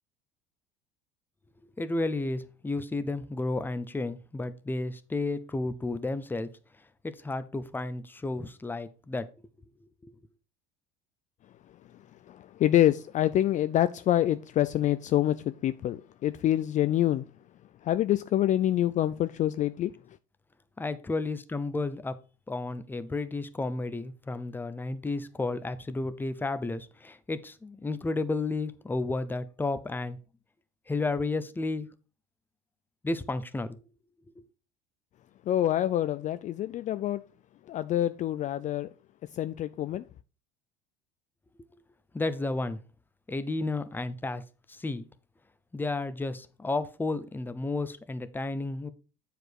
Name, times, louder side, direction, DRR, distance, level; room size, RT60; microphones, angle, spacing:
voice 1, 1.8-6.5 7.0-9.3 10.0-10.1 20.8-22.2 22.5-30.2 30.9-31.9 33.0-33.8 42.1-42.8 43.3-44.4 44.7-45.1 45.7-48.9, left 2 dB, 10° left, 0.7 m, -32 dB
voice 2, 12.3-17.3 17.8-19.9 35.5-37.2 37.7-38.9 39.3-40.0, left 12 dB, 40° left, 0.4 m, -26 dB
7.7 x 5.0 x 4.6 m
supercardioid pair, 100°, 20 cm